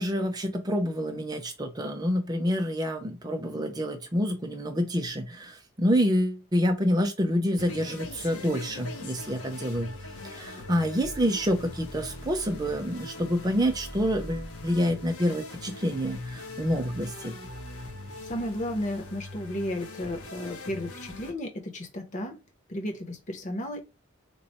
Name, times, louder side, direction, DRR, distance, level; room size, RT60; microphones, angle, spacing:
voice 1, 0.0-9.9 10.3-17.4, equal, 20° right, 0.5 m, -27 dB
sound 1, 7.6-21.3, left 2 dB, 85° left, 1.0 m, -41 dB
voice 2, 18.2-22.4 22.7-23.8, left 1 dB, 35° left, 0.7 m, -33 dB
3.0 x 2.0 x 4.1 m
head